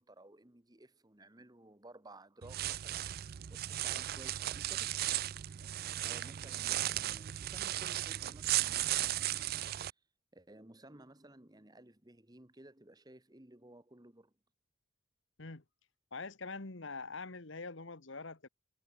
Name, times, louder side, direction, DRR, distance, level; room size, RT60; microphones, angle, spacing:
voice 1, 0.0-5.0 6.0-9.7 10.3-14.3, right 1 dB, 20° right, 1.3 m, -56 dB
sound 1, 2.4-9.9, right 14 dB, 45° right, 0.3 m, -36 dB
voice 2, 16.1-18.5, left 3 dB, 60° left, 1.4 m, -44 dB
head